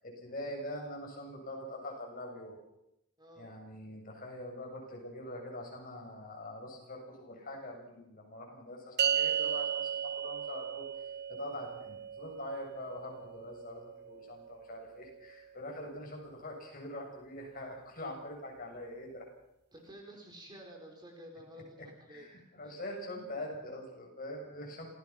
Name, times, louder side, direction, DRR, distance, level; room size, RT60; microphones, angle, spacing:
voice 1, 0.0-2.6 3.4-10.8 11.3-19.2 21.8-24.9, left 1 dB, 45° left, 0 dB, 7.2 m, -44 dB
voice 2, 3.2-3.5 19.7-22.3 22.6-22.8, equal, 20° right, 2 dB, 4.3 m, -51 dB
sound 1, 9.0-15.5, right 8 dB, 50° right, 0.7 m, -36 dB
27.0 x 17.5 x 5.9 m, 0.84 s
head